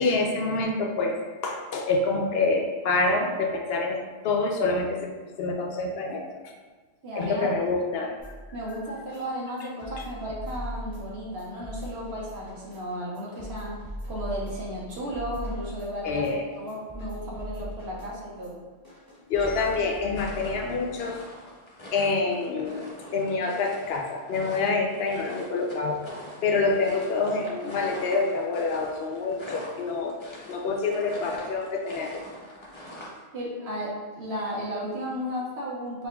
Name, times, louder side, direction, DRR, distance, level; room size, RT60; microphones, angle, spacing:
voice 1, 0.0-6.2 7.1-8.1 16.0-16.5 19.3-21.2 21.9-26.0 26.4-30.2 30.5-32.2, left 3 dB, 75° left, 2 dB, 0.8 m, -27 dB
voice 2, 7.0-7.5 8.5-13.8 14.1-16.2 16.6-18.6 33.3-36.1, equal, 85° right, -5 dB, 1.3 m, -34 dB
sound 1, 8.2-21.2, equal, 20° right, 1.4 m, -40 dB
sound 2, 19.3-33.2, equal, 30° left, 0.7 m, -44 dB
5.5 x 2.6 x 2.2 m, 1.4 s
omnidirectional pair, 1.0 m